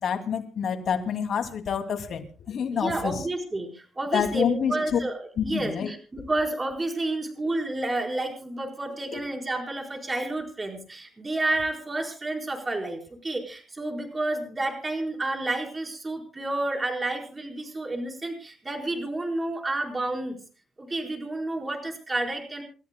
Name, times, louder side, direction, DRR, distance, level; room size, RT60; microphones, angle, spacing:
voice 1, 0.0-3.2 4.1-5.0 5.4-5.9 9.1-9.2, left 7 dB, 60° left, 6 dB, 2.6 m, -27 dB
voice 2, 2.7-20.4 20.8-22.6, right 2 dB, 25° right, 2 dB, 4.6 m, -30 dB
29.0 x 14.0 x 2.3 m, 0.35 s
cardioid pair, 90°, 0 cm